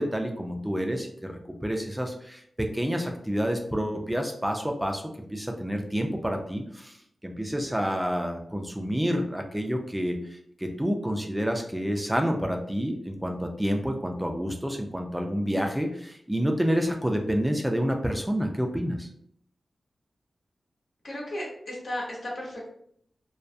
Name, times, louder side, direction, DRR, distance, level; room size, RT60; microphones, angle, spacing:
voice 1, 0.0-7.0 7.2-19.1, equal, 10° right, 3 dB, 0.4 m, -29 dB
voice 2, 21.0-22.7, left 1 dB, 70° left, -4 dB, 0.9 m, -35 dB
2.2 x 2.2 x 2.6 m, 0.68 s
cardioid pair, 50°, 0 cm